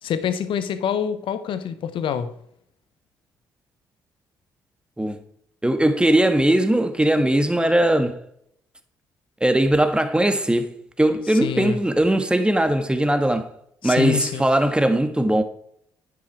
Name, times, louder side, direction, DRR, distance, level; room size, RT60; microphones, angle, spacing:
voice 1, 0.0-2.3 11.3-11.8 13.8-14.4, left 8 dB, 60° left, 1.1 m, -26 dB
voice 2, 5.6-8.2 9.4-13.5 13.8-15.4, right 1 dB, 10° right, 1.6 m, -20 dB
10.5 x 7.4 x 4.8 m
hypercardioid pair, 45°, 10 cm